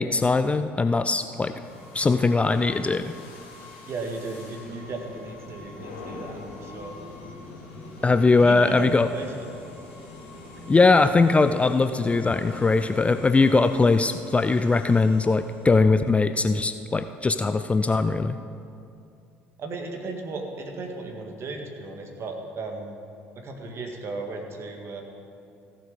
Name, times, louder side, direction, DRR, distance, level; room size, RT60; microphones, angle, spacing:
voice 1, 0.0-1.5 1.9-3.1 8.0-9.1 10.7-18.4, left 3 dB, 20° left, 10 dB, 0.4 m, -20 dB
sound 1, 1.1-15.8, left 2 dB, 75° left, 2.2 m, -44 dB
voice 2, 3.8-7.0 8.4-9.5 19.6-23.0 23.4-25.0, right 3 dB, 45° right, 2 dB, 1.8 m, -35 dB
15.5 x 7.4 x 5.1 m, 2.5 s
figure-of-eight pair, 55°, 6 cm